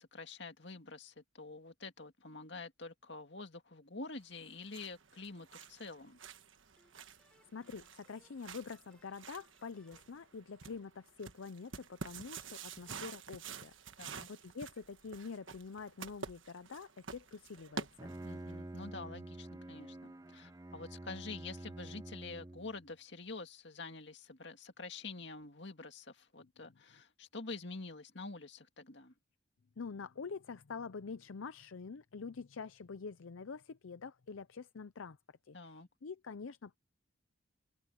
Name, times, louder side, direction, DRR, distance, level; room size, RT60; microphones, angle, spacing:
voice 1, 0.0-6.2 14.0-14.3 18.2-29.1 35.5-35.9, left 3 dB, 55° left, 2.2 m, -47 dB
sound 1, 4.3-18.5, right 5 dB, 70° right, 1.4 m, -49 dB
sound 2, 6.8-11.1, left 1 dB, 5° left, 5.5 m, -73 dB
voice 2, 7.5-13.7 14.0-18.1 26.4-26.5 29.8-35.2 35.4-36.8, left 5 dB, 80° left, 0.6 m, -46 dB
Bowed string instrument, 17.8-22.9, right 1 dB, 15° right, 0.4 m, -48 dB
open air
head